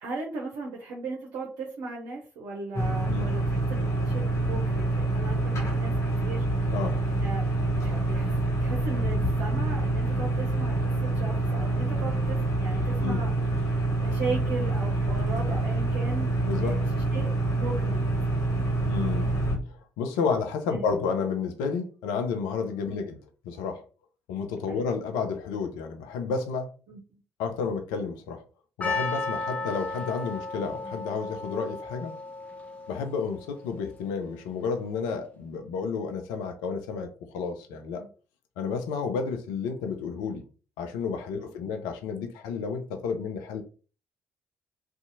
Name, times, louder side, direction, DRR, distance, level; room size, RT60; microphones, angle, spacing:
voice 1, 0.0-6.7 7.2-13.3 13.6-13.7 14.0-16.3 16.6-16.8 17.1-18.0 20.7-20.8 22.8-23.0 24.7-24.8 26.9-27.0 38.0-38.1 41.4-41.5, right 3 dB, 60° right, 0.6 m, -37 dB
sound 1, 2.7-19.6, right 2 dB, 40° left, 1.1 m, -26 dB
voice 2, 18.9-19.3 19.7-23.2 23.4-23.8 24.3-26.7 27.4-28.4 28.8-32.1 32.9-38.1 38.6-40.4 40.8-43.6, left 5 dB, 70° left, 0.5 m, -31 dB
Percussion, 28.8-33.7, left 3 dB, 20° left, 0.8 m, -34 dB
2.6 x 2.4 x 2.6 m
figure-of-eight pair, 45°, 7 cm